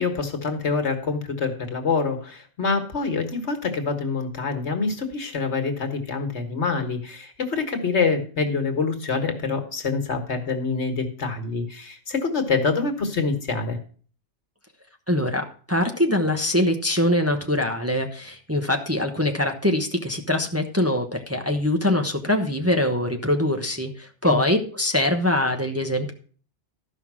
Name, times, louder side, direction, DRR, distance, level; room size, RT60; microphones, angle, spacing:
voice 1, 0.0-13.8 24.2-24.4, left 4 dB, 70° left, 6 dB, 1.8 m, -26 dB
voice 2, 15.1-26.1, left 1 dB, 15° right, 3 dB, 1.0 m, -23 dB
13.0 x 5.6 x 6.1 m, 0.42 s
omnidirectional pair, 1.2 m